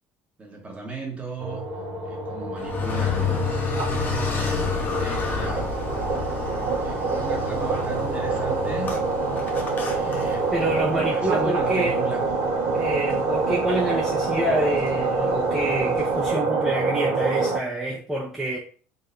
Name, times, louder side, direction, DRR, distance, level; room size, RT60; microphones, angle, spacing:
voice 1, 0.4-1.7 2.0-5.7 6.8-9.0 9.7-12.3, right 3 dB, 25° right, 1.2 m, -37 dB
sound 1, 1.4-17.6, right 3 dB, 75° right, 1.3 m, -26 dB
Car, 2.6-10.8, left 5 dB, 30° left, 0.9 m, -30 dB
sound 2, 3.7-16.3, left 4 dB, 80° left, 1.3 m, -43 dB
voice 2, 10.5-12.0 12.7-18.6, right 1 dB, 5° right, 0.7 m, -27 dB
3.9 x 3.2 x 2.6 m
cardioid pair, 135°, 6 cm